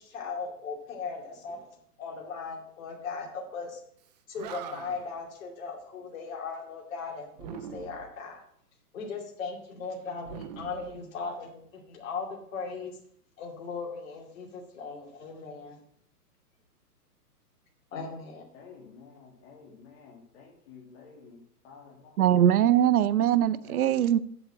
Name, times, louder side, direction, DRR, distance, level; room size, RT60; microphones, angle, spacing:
voice 1, 0.0-1.7 2.0-3.8 4.3-8.4 8.9-13.0 13.4-15.8 17.9-18.4, left 4 dB, 55° left, 2.6 m, -38 dB
Animal, 4.0-4.1 4.3-5.2 7.3-8.2 10.2-11.5, right 8 dB, 25° right, 0.6 m, -43 dB
voice 2, 18.5-22.4 23.6-24.2, left 5 dB, 40° left, 2.2 m, -51 dB
voice 3, 22.2-24.2, right 11 dB, 65° right, 0.8 m, -22 dB
7.9 x 6.8 x 7.6 m
hypercardioid pair, 145°, 47 cm